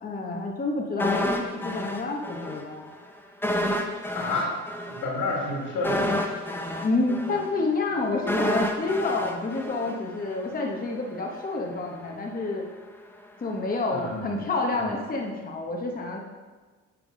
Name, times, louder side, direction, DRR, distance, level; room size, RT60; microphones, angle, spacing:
voice 1, 0.0-2.9 6.8-12.6 13.4-16.2, left 3 dB, 30° left, 0 dB, 1.0 m, -29 dB
sound 1, 1.0-2.6 2.9-3.0 3.4-10.5 10.8-10.9, left 1 dB, 5° left, 0.7 m, -29 dB
voice 2, 4.1-4.5 4.9-6.7 13.9-14.4 14.7-14.9, left 2 dB, 80° left, -2 dB, 1.9 m, -31 dB
9.0 x 3.5 x 5.0 m, 1.3 s
cardioid pair, 90°, 30 cm